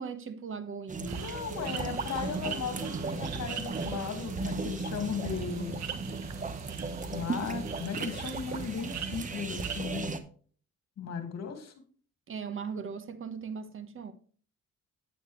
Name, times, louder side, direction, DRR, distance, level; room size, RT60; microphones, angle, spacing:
voice 1, 0.0-1.4 12.3-14.1, right 6 dB, 45° right, 1.3 m, -38 dB
sound 1, 0.9-10.2, right 3 dB, 25° right, 1.0 m, -36 dB
voice 2, 1.1-5.8 7.1-10.1 11.0-11.7, left 6 dB, 60° left, 2.0 m, -36 dB
sound 2, 1.1-10.0, right 8 dB, 60° right, 1.3 m, -42 dB
9.2 x 8.6 x 3.2 m
cardioid pair, 90°, 30 cm